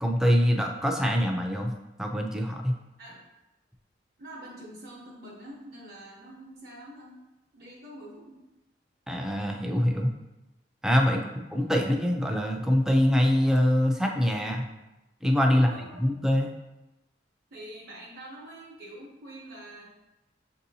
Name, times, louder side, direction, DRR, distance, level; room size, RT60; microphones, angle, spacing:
voice 1, 0.0-1.7 2.0-2.7 9.1-10.1 10.8-14.7 15.2-16.5, equal, 5° right, 1 dB, 0.4 m, -24 dB
voice 2, 4.2-7.2 7.5-8.4 11.0-11.4 15.5-16.0 17.5-19.9, right 1 dB, 55° right, -4 dB, 0.9 m, -45 dB
6.6 x 2.7 x 2.7 m, 0.99 s
head